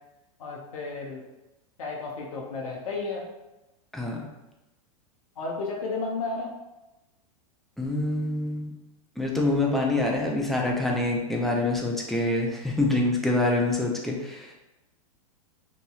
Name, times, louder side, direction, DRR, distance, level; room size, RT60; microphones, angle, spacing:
voice 1, 0.4-1.2 1.8-3.3 5.4-6.5, left 3 dB, 75° left, -1 dB, 0.7 m, -32 dB
voice 2, 3.9-4.3 7.8-8.7 9.2-14.5, left 2 dB, ahead, -2 dB, 0.4 m, -26 dB
2.9 x 2.6 x 2.3 m, 0.99 s
hypercardioid pair, 115°, 18 cm